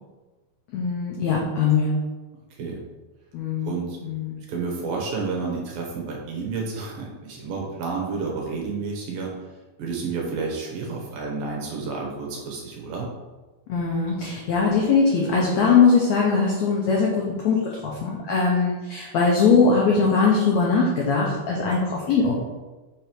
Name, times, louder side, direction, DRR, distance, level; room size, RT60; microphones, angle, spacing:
voice 1, 0.7-2.0 3.3-4.4 13.7-22.3, left 5 dB, 80° left, -3 dB, 1.6 m, -21 dB
voice 2, 3.6-4.0 4.5-9.3 9.8-13.1, right 4 dB, 70° right, -1 dB, 2.8 m, -30 dB
6.2 x 5.1 x 4.6 m, 1.2 s
omnidirectional pair, 4.4 m